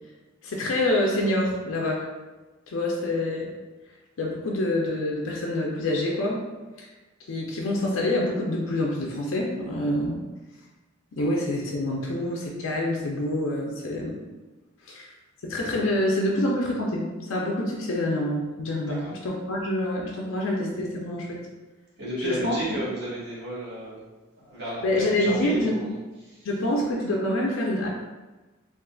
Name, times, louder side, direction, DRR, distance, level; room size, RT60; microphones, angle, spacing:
voice 1, 0.4-2.0 2.7-3.5 4.2-6.4 7.3-10.2 11.1-14.2 14.8-15.1 15.4-21.4 22.2-22.5 24.8-25.8 26.4-27.9, left 1 dB, 75° left, -2 dB, 0.5 m, -26 dB
voice 2, 22.0-24.0 24.4-25.9 26.2-26.5, right 1 dB, 60° right, -8 dB, 1.3 m, -33 dB
3.7 x 2.5 x 2.3 m, 1.2 s
head